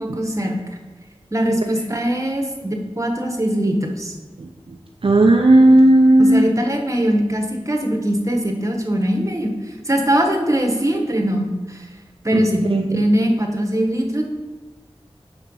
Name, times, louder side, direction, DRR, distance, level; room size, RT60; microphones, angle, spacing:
voice 1, 0.0-0.6 1.3-4.1 6.2-11.9 12.2-14.2, equal, 30° right, 2 dB, 1.1 m, -21 dB
voice 2, 5.0-6.5 12.3-13.0, right 1 dB, 60° right, 2 dB, 0.5 m, -14 dB
5.8 x 4.3 x 5.3 m, 1.2 s
wide cardioid pair, 45°, 11 cm